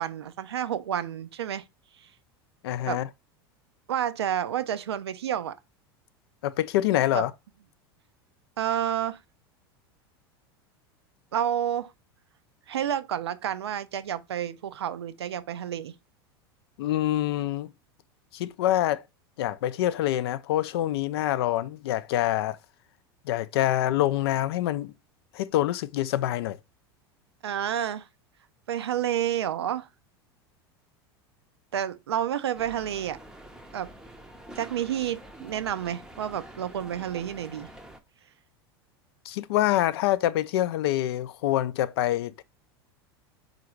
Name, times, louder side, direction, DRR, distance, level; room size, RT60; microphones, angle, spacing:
voice 1, 0.0-1.7 2.0-2.1 2.9-3.0 3.9-5.6 7.1-7.2 8.6-9.2 11.3-11.9 12.7-15.9 27.4-28.1 28.7-29.9 31.7-33.2 33.7-33.9 34.5-37.7, right 10 dB, 85° right, 0.4 m, -30 dB
voice 2, 2.6-3.1 6.4-7.3 16.8-17.7 18.3-19.0 19.4-22.6 23.3-24.9 25.3-26.6 39.3-42.4, left 13 dB, 70° left, 0.4 m, -26 dB
sound 1, 32.5-38.0, right 1 dB, 5° right, 0.6 m, -47 dB
3.9 x 2.5 x 4.4 m
hypercardioid pair, 90°, 13 cm